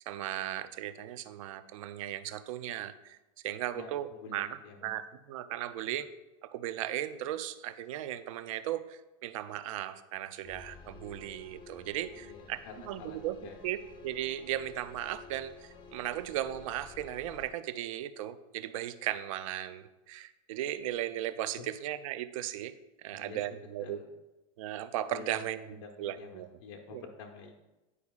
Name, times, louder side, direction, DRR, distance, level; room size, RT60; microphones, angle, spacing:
voice 1, 0.0-3.2 3.4-4.1 4.3-4.5 4.8-5.0 5.3-6.1 6.4-12.6 12.9-13.4 13.6-22.7 23.0-24.0 24.6-25.6 26.0-26.5 26.9-27.0, right 12 dB, 85° right, 13 dB, 0.4 m, -36 dB
voice 2, 3.7-4.9 5.8-6.0 12.1-13.6 23.1-23.4 23.8-24.1 25.1-25.4 25.7-27.5, left 5 dB, 65° left, 2 dB, 0.8 m, -49 dB
sound 1, 10.4-17.5, left 4 dB, 25° left, 0.5 m, -52 dB
9.7 x 4.6 x 2.3 m, 1.0 s
supercardioid pair, 150°, 17 cm